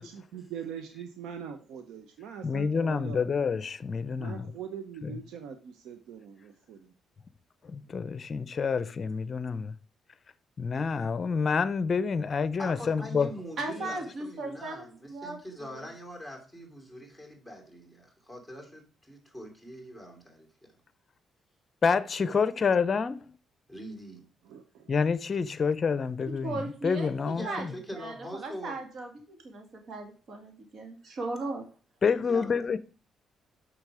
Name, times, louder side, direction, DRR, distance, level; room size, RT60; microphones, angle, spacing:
voice 1, 0.0-3.2 4.1-6.9 24.4-24.9, right 7 dB, 85° right, 0.9 m, -42 dB
voice 2, 2.4-4.5 5.0-5.1 7.7-9.7 10.6-13.3 21.8-23.2 24.9-26.6 26.8-27.7 32.0-32.8, left 5 dB, 40° left, 0.7 m, -28 dB
voice 3, 12.6-20.7 23.7-24.3 27.3-28.8 32.3-32.5, equal, 10° right, 2.9 m, -43 dB
voice 4, 13.6-15.9 26.4-31.7, right 2 dB, 55° right, 2.4 m, -38 dB
6.4 x 6.1 x 4.9 m
cardioid pair, 90°, 0 cm